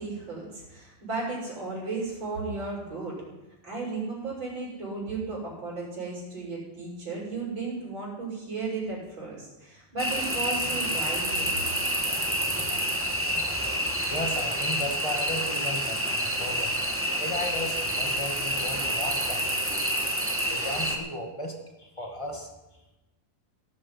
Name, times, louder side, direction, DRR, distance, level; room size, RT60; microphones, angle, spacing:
voice 1, 0.0-3.2 3.6-11.7, right 3 dB, 30° right, -5 dB, 7.2 m, -34 dB
sound 1, 10.0-21.0, equal, 15° right, 0.4 m, -28 dB
voice 2, 14.0-16.8 17.2-19.8 20.5-22.5, left 1 dB, 15° left, 2 dB, 1.1 m, -35 dB
17.0 x 12.5 x 5.7 m, 1.0 s
omnidirectional pair, 4.2 m